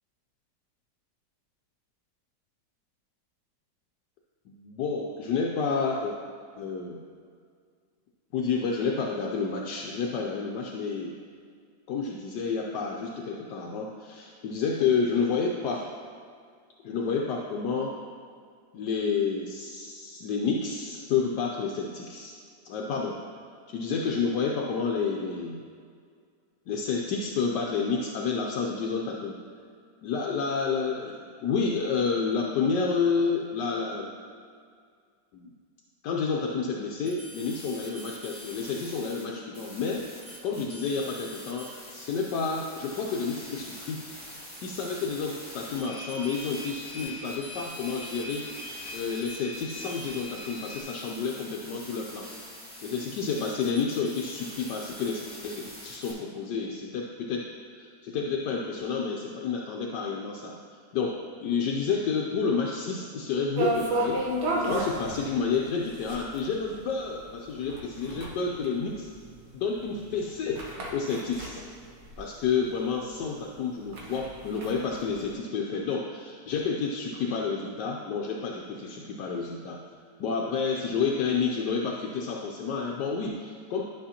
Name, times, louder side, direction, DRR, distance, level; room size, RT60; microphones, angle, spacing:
voice 1, 4.5-6.1 6.6-7.0 8.3-11.2 11.9-15.9 16.8-18.0 18.7-22.3 22.6-23.2 23.7-25.6 26.7-29.4 30.0-34.1 35.3-35.5 36.0-40.0 40.4-44.0 44.6-48.4 48.9-52.3 52.8-57.5 57.7-60.5 60.9-64.2 64.5-69.1 69.5-70.6 70.9-71.6 72.2-79.8 80.2-83.8, left 5 dB, 75° left, -1 dB, 1.2 m, -30 dB
sound 1, 37.1-39.2 39.5-56.1, left 1 dB, 20° left, 1.7 m, -45 dB
sound 2, 45.7-50.8, left 1 dB, 30° right, 1.8 m, -42 dB
sound 3, 63.5-72.7 73.0-73.1 73.5-75.3, right 1 dB, 80° right, 1.8 m, -32 dB
11.5 x 5.6 x 2.9 m, 2.1 s
omnidirectional pair, 1.9 m